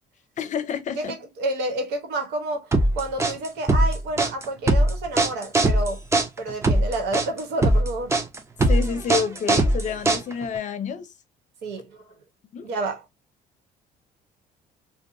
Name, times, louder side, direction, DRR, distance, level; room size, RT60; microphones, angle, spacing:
voice 1, 0.4-1.2 8.7-11.1 12.5-12.7, left 6 dB, 45° left, 0.6 m, -29 dB
voice 2, 1.0-6.0 6.4-8.1 11.6-12.0 12.6-13.0, right 2 dB, 90° right, 1.1 m, -29 dB
sound 1, 2.7-10.6, right 1 dB, 15° right, 0.6 m, -20 dB
2.6 x 2.1 x 2.6 m
cardioid pair, 110°, 17 cm